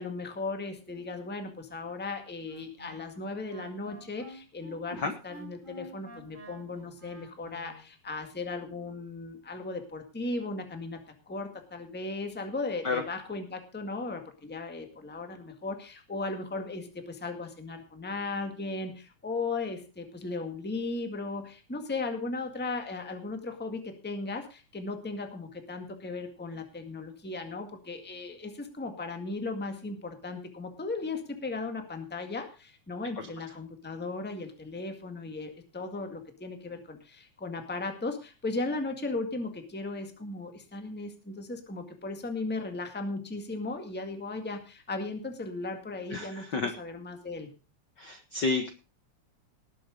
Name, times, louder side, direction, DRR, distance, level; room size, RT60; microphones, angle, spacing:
voice 1, 0.0-11.0 11.3-47.5, left 3 dB, 5° left, 5 dB, 1.3 m, -36 dB
Wind instrument woodwind instrument, 2.5-7.8, right 1 dB, 15° right, 4.0 m, -49 dB
voice 2, 46.1-46.7 48.0-48.7, left 3 dB, 55° left, 7 dB, 1.3 m, -30 dB
18.5 x 7.8 x 5.0 m, 0.32 s
omnidirectional pair, 3.3 m